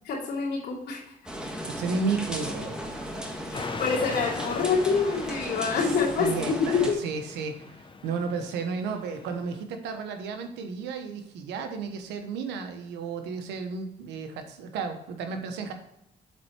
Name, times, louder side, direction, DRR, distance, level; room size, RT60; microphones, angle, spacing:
voice 1, 0.1-1.0 3.5-7.0, left 5 dB, 75° left, -4 dB, 2.8 m, -26 dB
sound 1, 1.3-6.9, equal, 5° right, 1.5 m, -36 dB
voice 2, 1.7-3.1 5.7-15.7, right 5 dB, 90° right, 6 dB, 1.0 m, -33 dB
sound 2, 3.5-9.6, left 4 dB, 30° left, 0.9 m, -40 dB
7.5 x 4.5 x 4.4 m, 0.82 s
cardioid pair, 75°, 17 cm